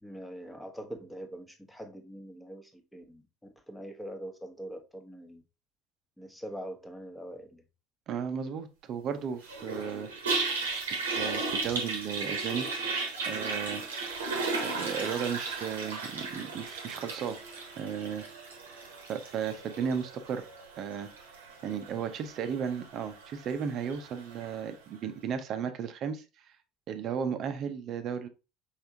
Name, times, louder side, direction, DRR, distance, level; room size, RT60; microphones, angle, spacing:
voice 1, 0.0-3.2 3.7-5.4 6.2-7.6, equal, 5° left, 1.0 m, -43 dB
voice 2, 8.1-10.1 10.9-12.7 13.2-13.8 14.6-17.4 17.7-18.3 19.1-20.5 20.8-21.1 21.6-26.2 26.9-28.3, right 7 dB, 50° right, 0.7 m, -34 dB
Toilet flush, 9.4-24.6, right 3 dB, 80° right, 0.9 m, -36 dB
4.8 x 3.4 x 2.7 m
hypercardioid pair, 65°, 0 cm